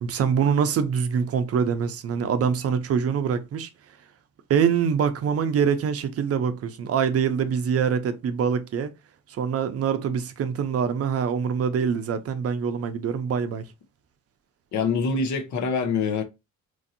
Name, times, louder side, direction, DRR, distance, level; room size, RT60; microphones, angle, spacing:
voice 1, 0.0-3.7 4.5-8.9 9.3-13.7, right 7 dB, 50° right, 0.5 m, -24 dB
voice 2, 14.7-16.2, left 5 dB, 70° left, 0.8 m, -25 dB
3.1 x 2.6 x 2.5 m
cardioid pair, 90°, 30 cm